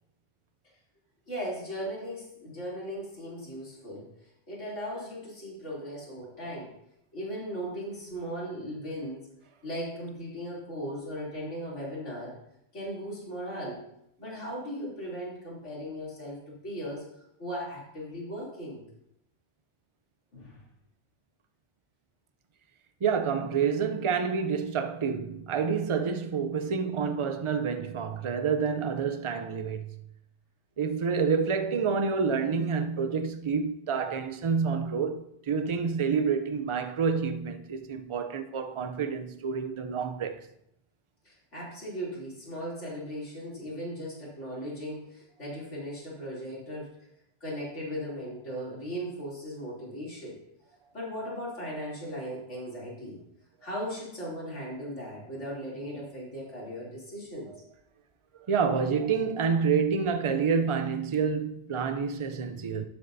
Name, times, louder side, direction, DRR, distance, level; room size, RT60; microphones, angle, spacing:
voice 1, 1.3-4.1 4.5-6.7 7.1-9.3 9.6-12.4 12.7-13.8 14.2-17.0 17.4-18.8 20.3-20.6 41.2-46.9 47.4-50.4 50.9-53.2 53.6-57.5, equal, 70° left, 3.4 m, -37 dB
voice 2, 23.0-30.0 30.8-40.5 57.5-57.6 58.5-62.9, right 6 dB, 45° right, 0.4 m, -28 dB
12.0 x 7.9 x 2.7 m
omnidirectional pair, 1.3 m